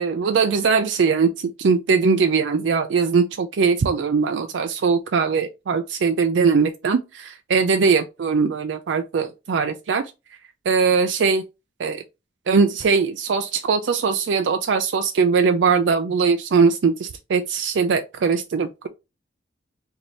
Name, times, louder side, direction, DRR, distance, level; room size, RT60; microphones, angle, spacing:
voice 1, 0.0-10.1 10.7-11.4 11.8-12.0 12.5-18.9, right 5 dB, 80° right, 0.4 m, -20 dB
4.4 x 2.7 x 3.1 m
head